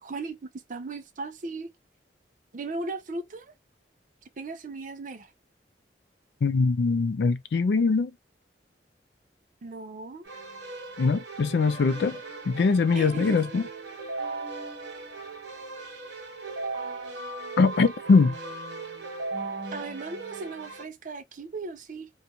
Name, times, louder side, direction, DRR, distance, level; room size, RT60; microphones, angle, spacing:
voice 1, 0.0-0.4 0.7-1.7 2.5-3.5 4.4-5.3 9.6-10.3 12.9-13.4 19.7-22.1, right 3 dB, 45° right, 0.5 m, -37 dB
voice 2, 6.4-8.1 11.0-12.2 12.5-13.6 17.6-18.3, left 4 dB, 65° left, 0.4 m, -22 dB
Keyboard (musical), 10.2-20.8, right 3 dB, 85° right, 1.3 m, -38 dB
2.5 x 2.3 x 2.8 m
head